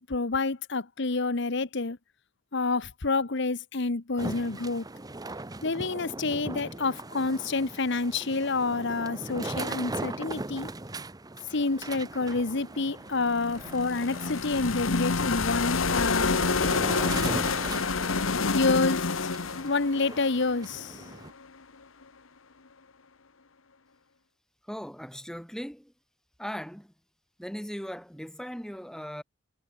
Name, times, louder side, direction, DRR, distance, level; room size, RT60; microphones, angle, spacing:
voice 1, 0.0-2.0 2.5-4.8 5.6-10.7 11.5-16.4 18.5-19.0 19.6-21.0, left 3 dB, 60° left, 1.1 m, -28 dB
sound 1, 4.2-21.3, right 2 dB, 20° right, 0.9 m, -39 dB
sound 2, 13.2-21.2, left 4 dB, 80° left, 1.3 m, -28 dB
voice 2, 24.6-25.9 26.4-26.9 27.4-29.2, equal, 5° left, 3.7 m, -38 dB
head